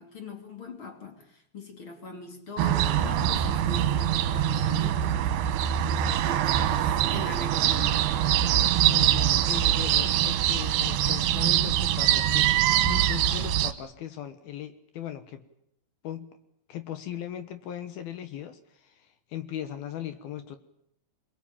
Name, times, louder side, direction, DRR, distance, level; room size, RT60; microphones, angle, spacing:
voice 1, 0.0-5.2 6.2-8.3, left 3 dB, 35° left, 2.9 m, -41 dB
sound 1, 2.6-13.7, right 11 dB, 75° right, 3.1 m, -24 dB
voice 2, 8.9-12.5 12.8-15.4 16.0-16.3 16.7-19.0 19.3-20.6, left 11 dB, 70° left, 2.9 m, -38 dB
25.5 x 22.5 x 8.8 m
omnidirectional pair, 4.8 m